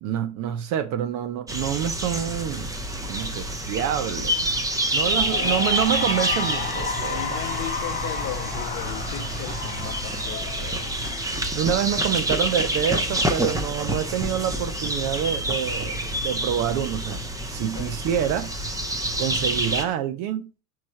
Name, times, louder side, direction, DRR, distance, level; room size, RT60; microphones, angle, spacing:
voice 1, 0.0-2.7 3.0-4.4 4.9-7.4 11.5-17.2 17.5-18.5 19.2-20.5, right 10 dB, 40° right, 0.6 m, -27 dB
sound 1, 1.5-19.8, right 1 dB, 10° right, 0.7 m, -28 dB
Cheering / Applause, 4.9-11.6, left 6 dB, 15° left, 1.4 m, -33 dB
voice 2, 5.1-5.6 7.1-10.9 12.0-12.2 17.7-17.9, left 11 dB, 40° left, 1.1 m, -37 dB
5.9 x 3.1 x 5.5 m
hypercardioid pair, 95°, 46 cm